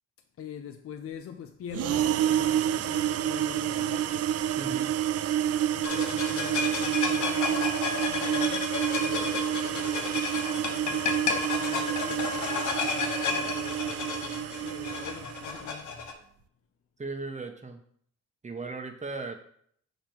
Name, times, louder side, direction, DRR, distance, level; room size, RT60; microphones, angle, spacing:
voice 1, 0.4-4.3 5.7-7.7 8.1-10.4 10.6-16.0, left 8 dB, 50° left, 0.7 m, -44 dB
sound 1, 1.7-15.7, right 11 dB, 55° right, 0.4 m, -29 dB
voice 2, 4.6-4.9 17.0-17.8 18.4-19.4, right 3 dB, 25° right, 1.2 m, -37 dB
sound 2, 5.8-16.1, left 5 dB, 75° left, 1.2 m, -32 dB
5.9 x 5.3 x 4.6 m
cardioid pair, 90°, 30 cm